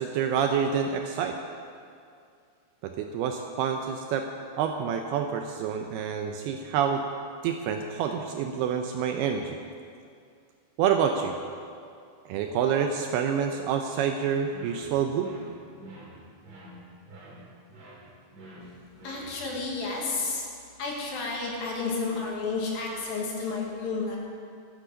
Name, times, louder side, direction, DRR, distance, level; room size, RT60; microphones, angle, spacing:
voice 1, 0.0-1.4 2.8-4.3 4.6-7.0 7.4-9.6 10.8-11.3 12.3-15.3, right 7 dB, 80° right, 4 dB, 2.4 m, -27 dB
sound 1, 14.5-19.6, right 1 dB, 45° right, 3.6 m, -48 dB
voice 2, 19.0-20.5 20.8-24.2, left 4 dB, 60° left, -2 dB, 3.2 m, -31 dB
13.0 x 10.0 x 6.3 m, 2.3 s
omnidirectional pair, 5.0 m